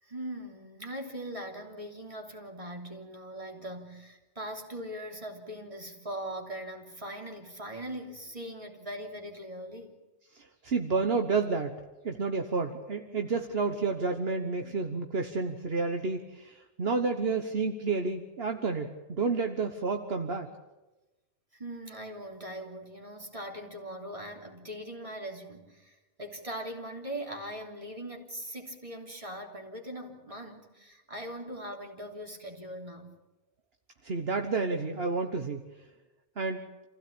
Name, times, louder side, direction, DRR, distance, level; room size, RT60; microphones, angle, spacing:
voice 1, 0.0-9.9 21.5-33.1, right 1 dB, 30° right, 1 dB, 3.5 m, -41 dB
voice 2, 10.3-11.8 12.0-20.5 34.0-35.6 36.4-36.6, right 4 dB, 65° right, 5 dB, 1.5 m, -30 dB
28.0 x 16.0 x 8.7 m, 1.1 s
omnidirectional pair, 1.1 m